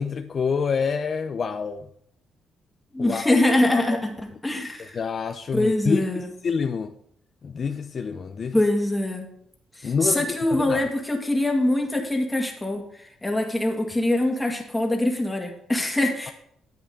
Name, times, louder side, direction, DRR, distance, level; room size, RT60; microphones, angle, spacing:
voice 1, 0.0-1.9 3.0-3.4 3.7-4.0 4.8-6.9 7.4-8.6 9.8-10.9, left 5 dB, 45° left, 7 dB, 0.5 m, -27 dB
voice 2, 2.9-4.1 4.4-5.0 5.5-6.3 8.5-9.3 9.8-16.3, left 1 dB, 10° left, 2 dB, 2.0 m, -23 dB
10.0 x 8.0 x 3.7 m, 0.67 s
cardioid pair, 90°, 0 cm